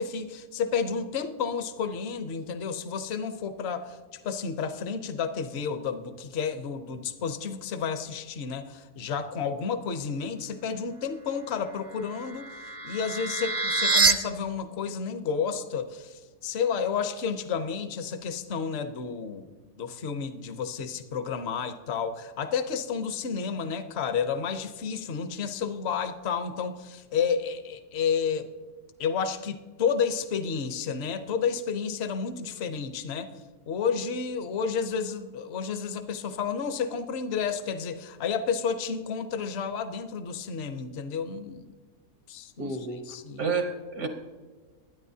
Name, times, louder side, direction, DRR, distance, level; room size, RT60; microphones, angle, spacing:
voice 1, 0.0-12.5 12.8-19.5 19.7-28.5 29.0-33.3 33.7-41.7 42.3-43.5, left 6 dB, 50° left, 9 dB, 0.9 m, -31 dB
sound 1, 11.9-14.1, right 3 dB, 35° right, 0.5 m, -26 dB
voice 2, 42.6-43.0 43.4-44.1, right 4 dB, 75° right, 5 dB, 1.5 m, -30 dB
21.5 x 9.7 x 2.7 m, 1.4 s
omnidirectional pair, 1.6 m